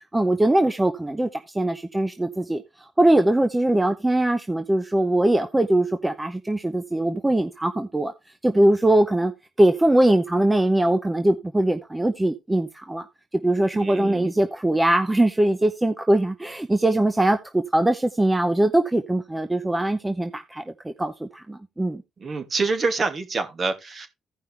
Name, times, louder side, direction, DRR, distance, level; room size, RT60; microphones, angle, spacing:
voice 1, 0.1-2.6 3.0-8.1 8.4-9.3 9.6-13.0 13.4-22.0, right 1 dB, 15° right, 0.9 m, -21 dB
voice 2, 13.7-14.3 22.2-24.1, right 4 dB, 45° right, 2.4 m, -26 dB
15.5 x 5.4 x 3.4 m
cardioid pair, 90°, 0 cm